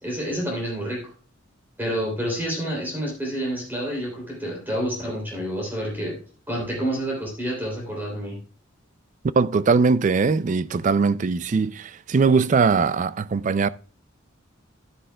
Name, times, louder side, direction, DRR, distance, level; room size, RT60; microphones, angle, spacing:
voice 1, 0.0-1.0 1.8-6.2 6.5-8.4, equal, 10° right, 3.0 m, -28 dB
voice 2, 9.4-13.7, right 4 dB, 40° right, 0.3 m, -20 dB
11.0 x 9.9 x 2.2 m
head